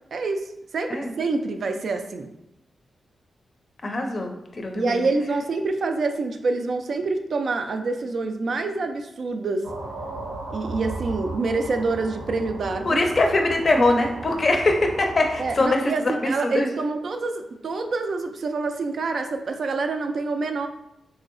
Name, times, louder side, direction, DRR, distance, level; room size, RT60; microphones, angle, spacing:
voice 1, 0.1-2.3 4.7-9.7 10.5-13.1 15.4-20.7, right 3 dB, 55° right, 6 dB, 0.3 m, -26 dB
voice 2, 3.8-5.0 12.9-16.7, left 2 dB, 40° left, 3 dB, 0.5 m, -22 dB
sound 1, 9.6-15.7, right 2 dB, 80° right, 0.7 m, -36 dB
3.9 x 2.7 x 2.5 m, 0.83 s
wide cardioid pair, 130°, 0 cm